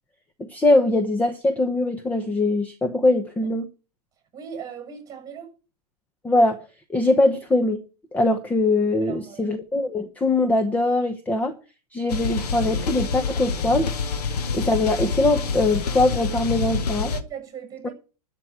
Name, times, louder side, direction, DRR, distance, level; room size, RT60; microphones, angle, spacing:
voice 1, 0.5-3.7 6.2-6.6 6.9-7.8 8.1-11.5 11.9-13.9 14.5-17.1 17.8-17.9, left 2 dB, 10° left, 0.9 m, -22 dB
voice 2, 4.3-5.5 9.0-9.6 17.1-17.9, right 8 dB, 15° right, 6.9 m, -38 dB
sound 1, 12.1-17.2, left 5 dB, 85° left, 2.0 m, -27 dB
12.5 x 6.0 x 8.9 m
supercardioid pair, 150°, 20 cm